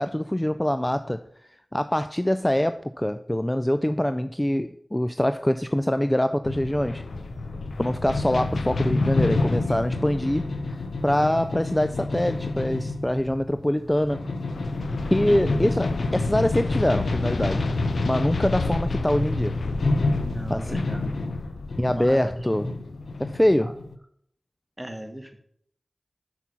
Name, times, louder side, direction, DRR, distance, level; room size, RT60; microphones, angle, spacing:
voice 1, 0.0-7.1 7.8-10.5 11.0-14.3 15.1-17.7 18.0-19.6 20.5-20.8 21.8-22.7 23.2-23.7, left 1 dB, 15° left, 11 dB, 0.4 m, -24 dB
sound 1, 6.4-24.0, left 2 dB, 85° left, 0.6 m, -28 dB
voice 2, 15.2-15.6 20.2-21.2 21.9-22.3 23.6-23.7 24.8-25.4, right 1 dB, 10° right, 5 dB, 1.3 m, -38 dB
6.1 x 5.9 x 5.6 m, 0.69 s
cardioid pair, 50°, 0 cm